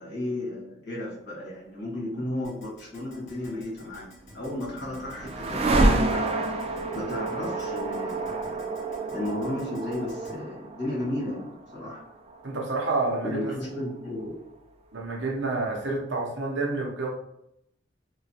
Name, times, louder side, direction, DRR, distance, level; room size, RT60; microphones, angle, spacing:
voice 1, 0.0-8.6 9.1-12.0 13.2-14.4, left 1 dB, 65° left, -5 dB, 1.3 m, -34 dB
Keyboard (musical), 2.4-10.3, left 1 dB, 45° left, 1.3 m, -51 dB
sound 1, 4.2-14.2, right 2 dB, 35° right, 0.3 m, -29 dB
voice 2, 12.4-13.5 14.9-17.1, right 3 dB, 75° right, 0 dB, 0.7 m, -28 dB
3.0 x 2.3 x 2.7 m, 0.78 s
head